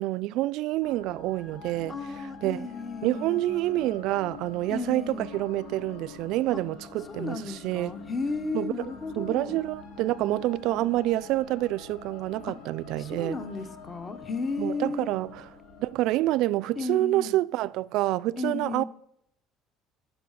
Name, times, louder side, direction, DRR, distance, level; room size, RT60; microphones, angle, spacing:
voice 1, 0.0-2.0 2.4-2.7 3.0-7.9 8.5-8.7 9.2-13.4 14.6-15.4 15.8-18.8, right 16 dB, 65° right, 0.3 m, -27 dB
sound 1, 0.8-17.0, left 5 dB, 85° left, 2.8 m, -45 dB
voice 2, 1.9-3.6 4.7-5.3 6.5-6.6 7.1-9.6 12.5-12.6 13.0-15.1 16.8-17.4 18.4-18.8, left 3 dB, 25° left, 0.9 m, -34 dB
13.0 x 5.5 x 6.5 m
cardioid pair, 140°, 0 cm